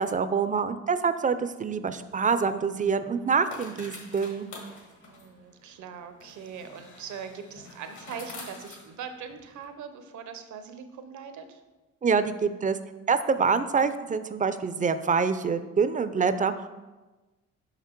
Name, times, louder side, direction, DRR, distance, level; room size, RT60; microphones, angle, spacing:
voice 1, 0.0-4.5 12.0-12.8 13.1-16.7, right 5 dB, 25° right, 12 dB, 0.4 m, -26 dB
sound 1, 2.0-9.7, left 3 dB, 75° left, 1.8 m, -48 dB
voice 2, 5.0-11.6, right 7 dB, 75° right, 8 dB, 0.8 m, -41 dB
5.9 x 5.8 x 4.5 m, 1.2 s
cardioid pair, 90°, 30 cm